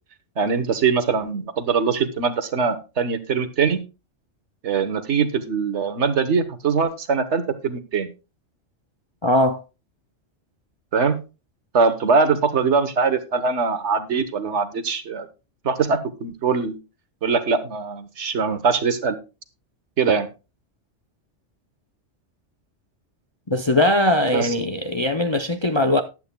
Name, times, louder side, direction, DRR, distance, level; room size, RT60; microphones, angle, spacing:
voice 1, 0.4-3.8 4.6-8.1 10.9-11.2 11.7-15.3 15.6-16.8 17.2-19.2 20.0-20.3 24.3-24.5, right 5 dB, 70° right, 1.4 m, -22 dB
voice 2, 9.2-9.6 23.5-26.0, left 1 dB, 30° left, 0.5 m, -20 dB
14.5 x 11.0 x 2.2 m
omnidirectional pair, 1.2 m